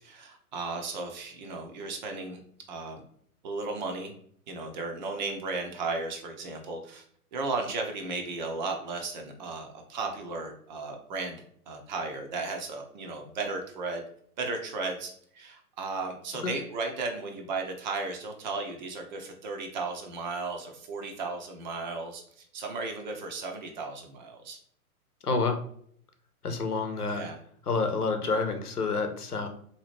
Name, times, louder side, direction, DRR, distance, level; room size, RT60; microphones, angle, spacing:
voice 1, 0.0-2.4 2.7-3.0 3.4-4.1 4.5-7.0 7.3-14.0 14.4-24.6 27.0-27.4, right 3 dB, 30° right, 4 dB, 0.6 m, -35 dB
voice 2, 25.2-25.6 26.4-27.2 27.7-29.5, left 4 dB, 80° left, 5 dB, 0.9 m, -28 dB
3.9 x 2.9 x 3.0 m, 0.62 s
figure-of-eight pair, 110°, 45 cm